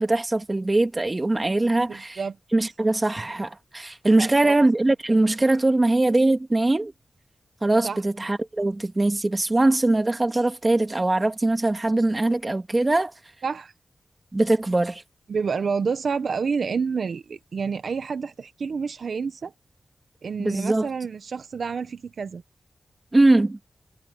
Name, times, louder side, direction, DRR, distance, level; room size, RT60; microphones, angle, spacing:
voice 1, 0.0-2.2 2.5-6.9 7.6-13.1 14.3-15.0 20.4-20.9 23.1-23.6, right 2 dB, 25° right, 2.1 m, -21 dB
voice 2, 1.8-2.4 4.2-4.5 7.8-8.0 13.4-13.7 15.3-19.5 20.2-22.4, right 5 dB, 70° right, 1.1 m, -29 dB
wide cardioid pair, 105°, 0 cm